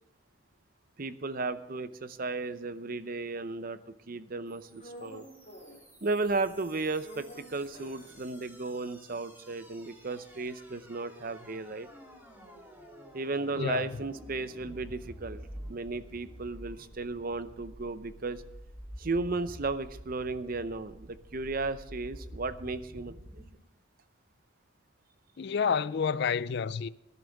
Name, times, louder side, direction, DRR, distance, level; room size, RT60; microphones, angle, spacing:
voice 1, 1.0-3.8 4.1-5.3 6.0-11.9 13.1-15.4 15.7-18.4 19.0-23.4, right 3 dB, 40° right, 0.6 m, -34 dB
sound 1, 4.5-23.5, equal, 10° right, 2.1 m, -49 dB
sound 2, 4.8-6.0 6.3-8.9 9.2-9.3 9.5-14.0 14.4-18.4, equal, 35° left, 3.9 m, -53 dB
voice 2, 13.6-13.9 25.4-26.9, left 6 dB, 50° left, 0.4 m, -29 dB
18.5 x 11.0 x 3.5 m
head